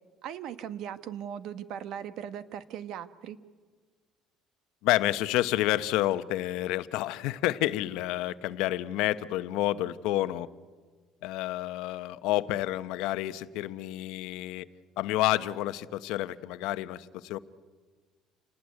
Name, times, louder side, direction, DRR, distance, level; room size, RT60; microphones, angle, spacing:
voice 1, 0.2-3.4, right 9 dB, 60° right, 12 dB, 1.1 m, -38 dB
voice 2, 4.8-10.5 11.2-14.6 15.0-17.4, left 15 dB, 90° left, 13 dB, 0.9 m, -29 dB
28.5 x 19.0 x 9.6 m, 1.5 s
cardioid pair, 165°, 0 cm